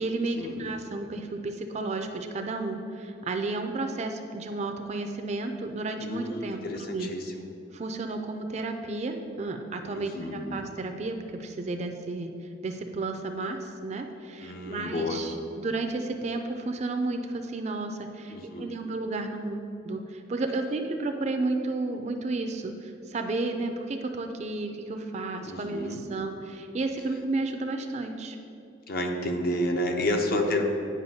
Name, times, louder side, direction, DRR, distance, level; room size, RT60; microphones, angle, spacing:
voice 1, 0.0-7.1 7.7-12.3 12.6-28.4, right 2 dB, 35° right, 5 dB, 0.4 m, -32 dB
voice 2, 6.0-7.5 9.9-10.6 14.4-15.3 18.3-18.7 25.4-26.0 28.9-30.6, left 1 dB, 50° left, 3 dB, 0.6 m, -30 dB
9.4 x 5.0 x 2.7 m, 2.7 s
head